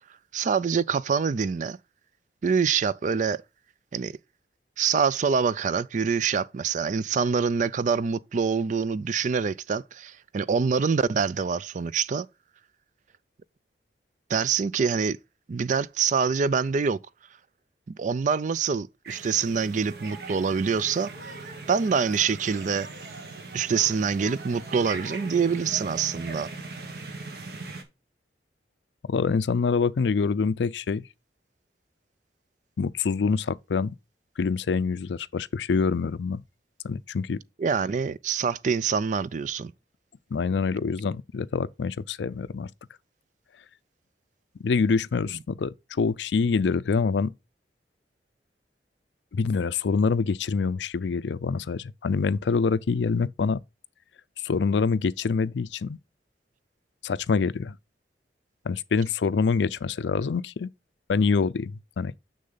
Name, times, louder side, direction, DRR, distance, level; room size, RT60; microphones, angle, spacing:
voice 1, 0.3-1.8 2.4-3.4 3.9-4.1 4.8-12.3 14.3-15.2 15.5-17.0 17.9-21.3 21.7-22.9 23.5-26.5 37.6-39.7, right 6 dB, 45° right, 0.4 m, -25 dB
sound 1, 19.0-27.8, right 3 dB, 60° right, 1.4 m, -39 dB
voice 2, 29.1-31.0 32.8-33.9 34.4-36.4 36.8-37.4 40.3-42.7 44.6-47.3 49.3-53.6 54.4-56.0 57.0-57.8 58.7-60.7 61.1-62.2, left 5 dB, 80° left, 0.4 m, -25 dB
6.6 x 6.5 x 3.9 m
head